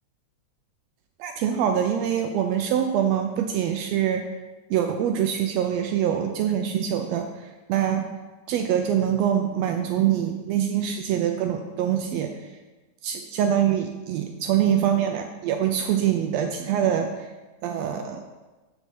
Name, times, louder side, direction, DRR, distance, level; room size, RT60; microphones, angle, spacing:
voice 1, 1.2-4.3 4.7-7.3 7.7-8.1 8.5-12.3 13.0-17.1 17.6-18.2, right 9 dB, 80° right, 5 dB, 1.5 m, -24 dB
7.1 x 4.0 x 6.1 m, 1.2 s
omnidirectional pair, 3.4 m